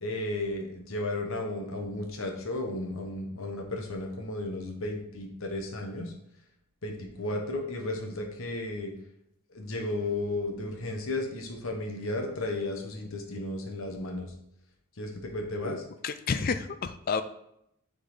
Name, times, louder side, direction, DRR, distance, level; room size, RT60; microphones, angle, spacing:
voice 1, 0.0-6.1 6.8-8.9 9.5-14.3 15.0-15.8, left 2 dB, 65° left, 3 dB, 1.2 m, -34 dB
voice 2, 15.6-17.2, left 5 dB, 40° left, 11 dB, 0.4 m, -31 dB
6.6 x 3.9 x 4.8 m, 0.77 s
head